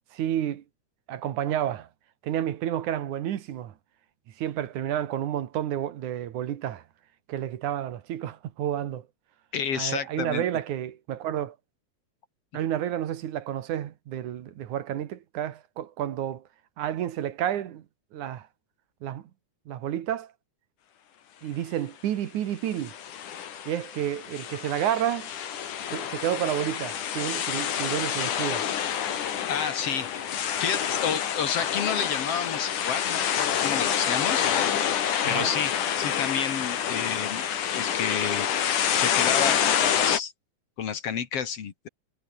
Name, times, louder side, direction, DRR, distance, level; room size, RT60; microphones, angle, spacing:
voice 1, 0.1-0.6 1.1-1.9 2.2-3.7 4.4-6.8 7.3-9.1 9.8-11.6 12.5-16.4 16.8-17.8 18.1-18.5 19.0-19.3 19.7-20.3 21.4-22.9 23.7-25.3 25.9-28.7 35.2-35.5, right 11 dB, 75° right, 2.9 m, -30 dB
voice 2, 9.5-10.4 29.5-30.1 30.6-34.5 35.3-37.4 37.7-38.5 38.9-40.3 40.8-41.9, left 7 dB, 55° left, 2.6 m, -30 dB
sound 1, 22.8-40.2, left 9 dB, 80° left, 3.7 m, -27 dB
omnidirectional pair, 3.5 m